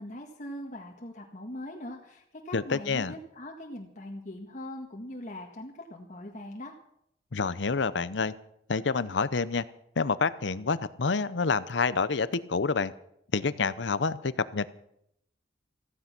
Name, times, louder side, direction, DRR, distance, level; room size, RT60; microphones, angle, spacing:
voice 1, 0.0-6.7, left 1 dB, 45° left, 1 dB, 1.7 m, -41 dB
voice 2, 2.5-3.1 7.3-8.3 8.7-9.6 10.0-12.9 13.3-14.7, left 4 dB, 80° left, 15 dB, 0.8 m, -28 dB
15.5 x 15.0 x 6.0 m, 0.74 s
head